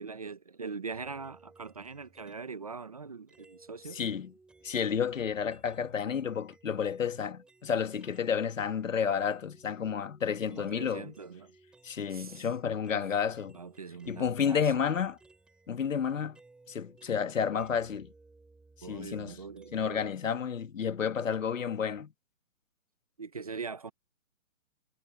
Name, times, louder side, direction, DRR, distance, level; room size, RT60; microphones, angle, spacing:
voice 1, 0.0-4.0 10.5-11.5 12.1-12.5 12.9-13.1 13.5-14.7 18.8-20.1 23.2-23.9, right 4 dB, 25° right, 0.9 m, -42 dB
sound 1, 0.9-2.6 3.3-8.4 8.7-20.1, right 3 dB, ahead, 3.7 m, -60 dB
voice 2, 3.9-4.3 4.6-11.1 11.8-13.6 14.1-15.2 15.7-16.4 16.7-18.1 18.9-19.3 19.7-22.1, left 7 dB, 65° left, 1.9 m, -31 dB
hypercardioid pair, 180°, 42 cm